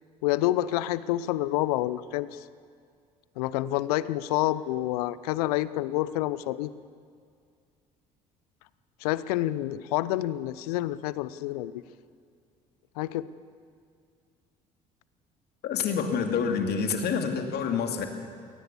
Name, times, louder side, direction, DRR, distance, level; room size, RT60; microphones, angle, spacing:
voice 1, 0.2-2.4 3.4-6.7 9.0-11.7 13.0-13.3, left 15 dB, 75° left, 17 dB, 0.7 m, -28 dB
voice 2, 15.6-18.1, left 6 dB, 55° left, 5 dB, 2.6 m, -27 dB
22.5 x 18.5 x 7.1 m, 2.2 s
hypercardioid pair, 55°, 20 cm